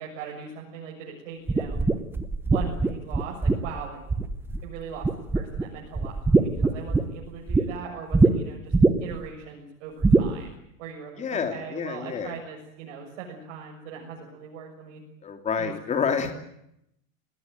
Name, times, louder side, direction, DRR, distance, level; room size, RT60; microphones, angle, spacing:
voice 1, 0.0-1.8 2.5-4.0 4.6-8.7 9.0-15.0 15.6-15.7 16.0-16.1, right 6 dB, 55° right, -1 dB, 6.9 m, -40 dB
sound 1, 1.5-4.7 5.0-5.6 5.9-7.6 8.1-8.3 8.7-9.2 10.0-10.3, right 3 dB, 5° right, 0.9 m, -21 dB
voice 2, 11.2-12.3 15.2-16.3, left 6 dB, 15° left, 6 dB, 3.2 m, -28 dB
27.5 x 19.5 x 9.3 m, 0.79 s
supercardioid pair, 150°, 42 cm